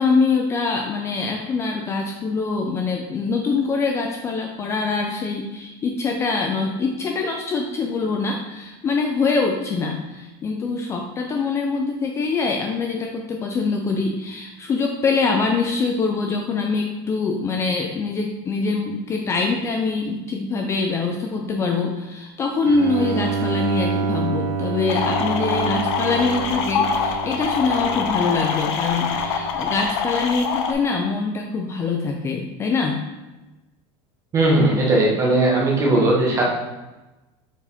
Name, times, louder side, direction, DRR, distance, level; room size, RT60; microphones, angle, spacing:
voice 1, 0.0-33.0, left 4 dB, 20° left, 2 dB, 0.4 m, -24 dB
Bowed string instrument, 22.6-29.7, right 5 dB, 60° right, 0.6 m, -28 dB
sound 1, 24.9-30.7, left 6 dB, 80° left, 0.8 m, -24 dB
voice 2, 34.3-36.4, right 2 dB, 25° right, -2 dB, 1.4 m, -18 dB
7.0 x 4.5 x 3.6 m, 1.1 s
cardioid pair, 165°, 13 cm